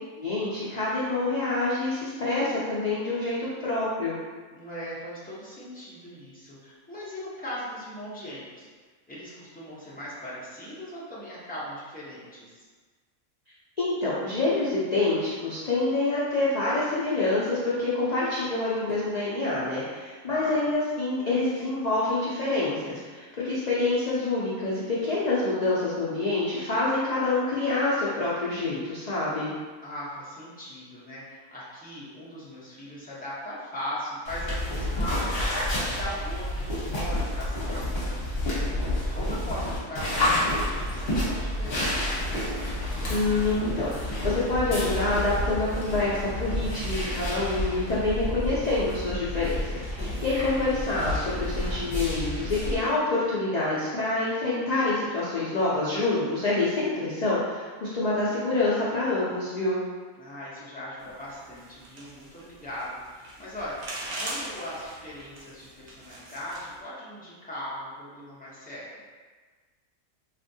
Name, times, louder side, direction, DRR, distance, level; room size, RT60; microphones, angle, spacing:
voice 1, 0.2-4.2 13.8-29.5 43.1-59.8, left 2 dB, 85° left, -8 dB, 0.3 m, -27 dB
voice 2, 4.5-8.7 9.1-12.7 20.3-20.6 29.8-42.1 50.1-50.6 60.2-63.8 64.2-68.9, left 1 dB, 10° left, -9 dB, 0.4 m, -39 dB
sound 1, 34.3-52.8, left 1 dB, 50° left, 1.0 m, -29 dB
sound 2, 61.0-66.8, right 2 dB, 55° right, 0.6 m, -41 dB
3.4 x 2.5 x 2.6 m, 1.5 s
omnidirectional pair, 1.4 m